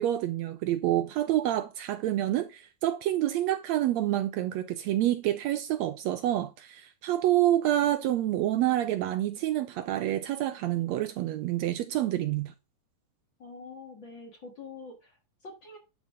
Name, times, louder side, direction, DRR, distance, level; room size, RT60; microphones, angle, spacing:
voice 1, 0.0-12.5, right 13 dB, 75° right, 1.7 m, -28 dB
voice 2, 13.4-15.8, left 3 dB, 45° left, 2.2 m, -45 dB
10.5 x 4.7 x 5.3 m
omnidirectional pair, 3.5 m